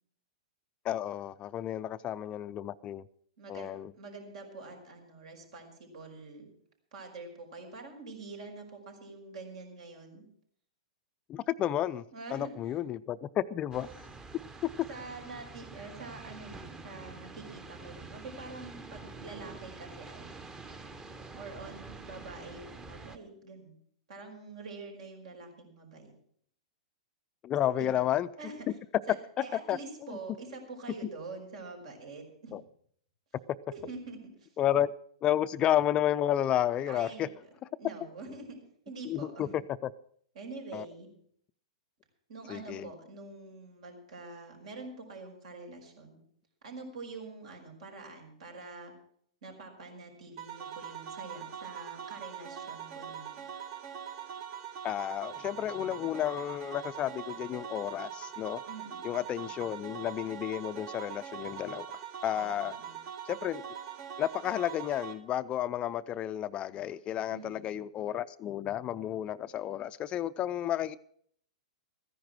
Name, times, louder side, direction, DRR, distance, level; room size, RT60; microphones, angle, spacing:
voice 1, 0.8-3.0 3.5-3.9 11.3-12.0 12.3-13.9 14.6-14.7 27.4-28.3 29.4-29.8 30.1-30.2 32.5-32.6 34.6-34.9 35.2-37.3 39.1-39.6 40.7-40.8 42.5-42.9 54.8-58.6 59.0-61.9 62.2-62.8 63.3-63.6 64.2-71.0, left 11 dB, 30° left, 0.4 m, -31 dB
voice 2, 3.4-3.7 3.9-6.5 6.9-10.2 12.1-12.8 14.9-20.3 21.3-23.8 24.1-26.1 27.6-28.0 28.4-28.7 29.1-32.6 33.7-34.5 36.9-37.3 37.8-38.6 38.8-39.5 40.3-41.1 42.3-46.2 46.6-48.9 49.4-53.4 58.7-59.7 62.3-63.0 67.3-67.8, right 3 dB, 65° right, 5.0 m, -46 dB
sound 1, 13.7-23.2, right 3 dB, 15° right, 1.0 m, -47 dB
sound 2, 50.4-65.1, right 8 dB, 50° right, 1.7 m, -42 dB
14.0 x 10.5 x 6.2 m
hypercardioid pair, 120°, 4 cm